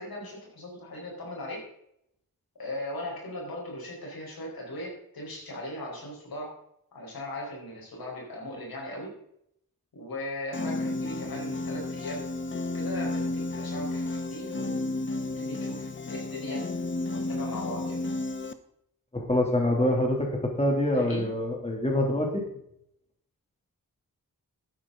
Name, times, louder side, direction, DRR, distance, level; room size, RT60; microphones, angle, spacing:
voice 1, 0.0-1.6 2.6-6.5 6.9-9.1 9.9-12.2 12.7-14.8 15.4-16.6 17.1-18.0 20.9-21.3, left 1 dB, 85° left, -2 dB, 4.7 m, -38 dB
Piano, 10.5-18.5, left 2 dB, 35° left, 0.9 m, -32 dB
voice 2, 19.1-22.4, left 1 dB, 20° left, 0 dB, 2.9 m, -25 dB
12.5 x 10.0 x 3.8 m, 0.74 s
wide cardioid pair, 75°, 35 cm